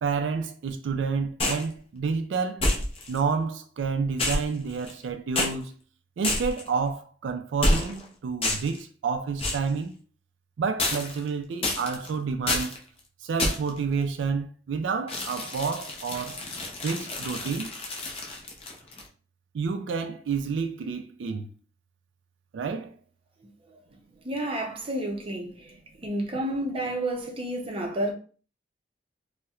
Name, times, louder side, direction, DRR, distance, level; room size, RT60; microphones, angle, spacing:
voice 1, 0.0-2.7 3.1-5.8 6.2-9.9 10.6-12.8 13.2-16.4 16.8-17.7 19.5-21.5 22.5-22.9, right 5 dB, 80° right, 0.3 m, -29 dB
sound 1, 1.4-1.7 2.6-3.2 4.2-5.0 5.3-5.5 6.2-6.7 7.6-8.0 8.4-8.8 9.4-9.7 10.8-11.3 11.6-12.1 12.5-12.8 13.4-13.8 15.1-19.1, left 2 dB, 30° left, 0.6 m, -28 dB
voice 2, 23.4-23.8 24.2-25.8 26.0-28.1, right 1 dB, 30° right, 0.5 m, -31 dB
4.2 x 2.1 x 2.3 m
head